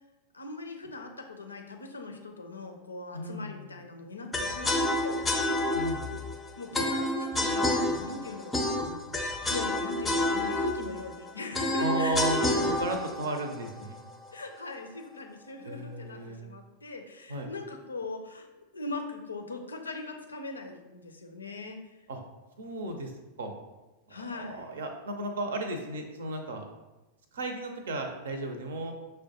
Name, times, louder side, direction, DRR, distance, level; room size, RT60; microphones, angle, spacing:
voice 1, 0.3-5.2 6.6-8.6 9.5-12.9 14.3-18.5 18.7-21.8 24.1-24.7, left 3 dB, 75° left, 4 dB, 0.5 m, -40 dB
voice 2, 3.1-3.8 5.7-6.0 11.8-14.0 15.6-16.5 17.3-17.5 22.1-22.2 22.6-23.1 23.4-23.6 24.1-26.6 27.3-28.9, right 2 dB, 65° right, 5 dB, 0.6 m, -34 dB
sound 1, 4.3-14.4, left 1 dB, 10° left, 0.5 m, -29 dB
6.2 x 2.2 x 2.8 m, 1.1 s
figure-of-eight pair, 90°, 0 cm